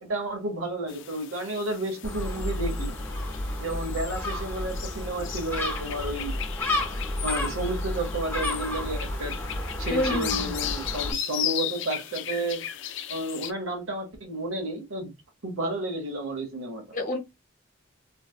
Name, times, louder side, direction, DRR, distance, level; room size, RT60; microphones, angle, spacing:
voice 1, 0.0-2.9 3.6-6.4 7.2-9.3 9.8-12.6 13.1-15.1 15.4-16.9, right 1 dB, 75° right, 1.1 m, -31 dB
sound 1, 0.9-13.5, left 11 dB, 60° left, 0.4 m, -36 dB
Gull seagull, 2.0-11.1, left 1 dB, 10° left, 0.7 m, -31 dB
voice 2, 9.9-10.6 16.9-17.2, left 1 dB, 40° left, 0.9 m, -28 dB
3.3 x 2.2 x 2.3 m
head